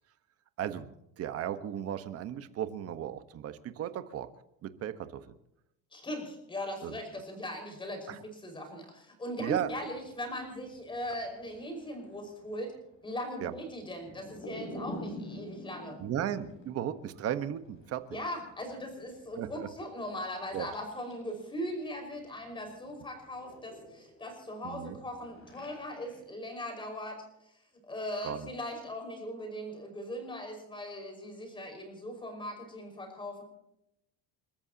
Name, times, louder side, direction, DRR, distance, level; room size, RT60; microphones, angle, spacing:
voice 1, 0.6-4.3 4.6-5.3 6.8-7.0 8.1-8.2 9.4-9.7 13.4-13.5 16.0-18.0 19.4-19.7 20.5-20.7 24.6-25.0 28.2-28.5, right 10 dB, 45° right, 10 dB, 1.3 m, -35 dB
voice 2, 5.9-12.7 13.0-16.0 18.1-27.2 27.4-33.4, equal, 15° left, 3 dB, 5.5 m, -39 dB
sound 1, 9.5-21.6 21.9-26.2, equal, 35° left, 6.9 m, -49 dB
30.0 x 13.5 x 3.0 m, 0.82 s
cardioid pair, 155°, 35 cm